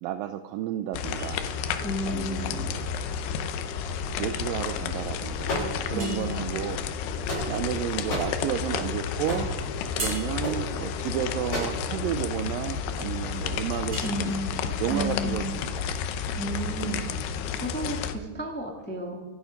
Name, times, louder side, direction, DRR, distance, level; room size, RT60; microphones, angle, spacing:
voice 1, 0.0-1.5 2.0-2.9 4.2-6.9 7.5-9.5 10.0-14.4 14.8-15.9, right 11 dB, 85° right, 10 dB, 2.0 m, -32 dB
sound 1, 0.9-18.2, left 7 dB, 85° left, 2.9 m, -31 dB
sound 2, 1.2-18.0, right 2 dB, 20° right, 3.2 m, -45 dB
voice 2, 1.8-2.5 5.9-6.5 14.0-14.6 14.9-15.6 16.4-17.0 17.6-19.2, equal, 15° left, 0 dB, 0.3 m, -32 dB
sound 3, 5.4-6.2 7.0-7.7 8.1-8.4 9.3-9.6 10.4-10.6 11.5-11.8, equal, 50° left, 8.0 m, -31 dB
25.5 x 8.8 x 5.2 m, 1.3 s
omnidirectional pair, 4.6 m